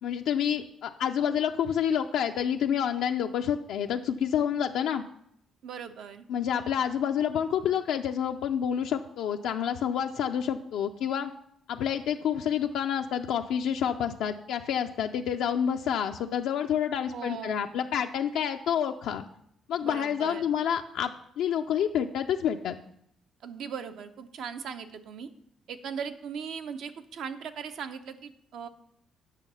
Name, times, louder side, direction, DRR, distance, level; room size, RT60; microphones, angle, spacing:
voice 1, 0.0-5.0 6.3-11.3 11.7-19.2 19.7-21.1 21.4-22.8, left 8 dB, 85° left, 4 dB, 0.4 m, -28 dB
voice 2, 5.6-6.3 17.1-17.7 19.8-20.5 23.4-25.3 25.7-28.7, right 7 dB, 75° right, 8 dB, 0.7 m, -39 dB
9.0 x 6.2 x 5.5 m, 0.73 s
cardioid pair, 90°, 0 cm